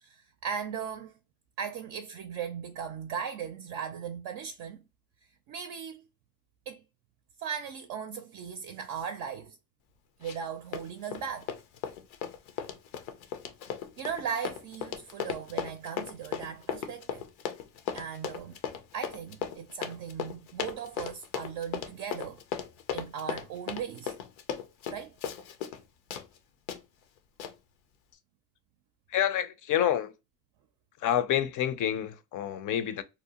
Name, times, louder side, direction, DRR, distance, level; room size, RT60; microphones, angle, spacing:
voice 1, 0.0-1.1 1.6-4.8 5.5-6.1 6.7-6.8 7.4-9.6 10.2-11.5 14.0-17.2 17.9-18.6 18.9-22.4 22.9-24.2 24.9-25.1, right 7 dB, 50° right, 0.5 m, -38 dB
Run, 10.2-10.5 10.7-25.8 26.1-26.3 26.7-26.8 27.4-27.5, left 8 dB, 85° left, 0.6 m, -36 dB
voice 2, 29.1-30.1 31.0-33.0, left 10 dB, 45° left, 0.5 m, -28 dB
2.7 x 2.0 x 2.8 m
supercardioid pair, 90°, 47 cm